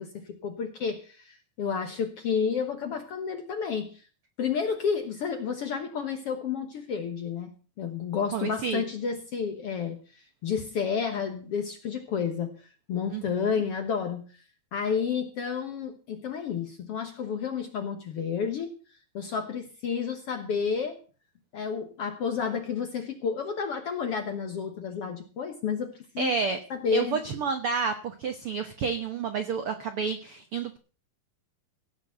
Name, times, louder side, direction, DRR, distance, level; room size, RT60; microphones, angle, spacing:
voice 1, 0.0-4.0 4.4-7.5 7.8-12.6 12.9-14.2 14.7-18.7 19.1-21.0 21.5-26.3 26.7-27.2, left 6 dB, 60° left, 6 dB, 1.5 m, -31 dB
voice 2, 8.3-8.8 13.1-13.5 26.2-26.6 26.9-30.8, right 5 dB, 85° right, 7 dB, 1.2 m, -30 dB
16.5 x 6.1 x 7.9 m, 0.38 s
omnidirectional pair, 4.2 m